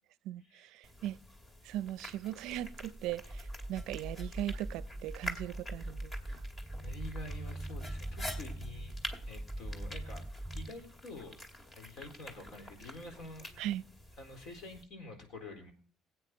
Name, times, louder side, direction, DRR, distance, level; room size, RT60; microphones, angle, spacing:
voice 1, 0.2-1.2 1.6-6.1 13.6-13.8, right 13 dB, 80° right, 0.4 m, -39 dB
sound 1, 0.8-14.8, left 1 dB, 30° left, 2.3 m, -48 dB
sound 2, 3.2-10.7, right 1 dB, 5° left, 1.9 m, -41 dB
voice 2, 6.8-10.3 10.5-11.4 11.7-13.5 14.2-15.7, left 2 dB, 65° left, 4.0 m, -48 dB
17.5 x 8.9 x 3.9 m
supercardioid pair, 85°, 0 cm